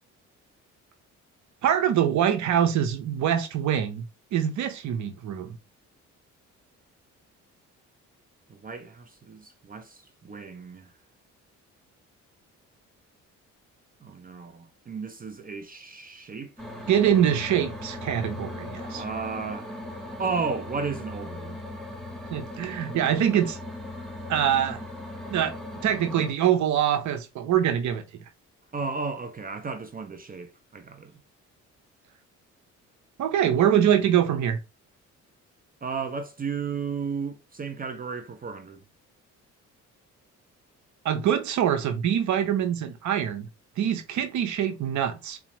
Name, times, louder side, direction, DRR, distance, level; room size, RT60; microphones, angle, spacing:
voice 1, 1.6-4.1 4.3-5.5 16.9-19.0 22.3-23.6 24.3-24.8 25.3-25.5 25.8-28.0 33.2-34.6 41.0-43.5 43.8-45.4, right 9 dB, 70° right, 0.9 m, -24 dB
voice 2, 8.5-10.9 14.0-16.7 18.8-19.7 20.2-21.6 28.7-31.1 35.8-38.8, right 5 dB, 30° right, 0.6 m, -34 dB
sound 1, 16.6-26.3, left 1 dB, ahead, 1.4 m, -38 dB
4.1 x 2.4 x 3.0 m
cardioid pair, 90°, 30 cm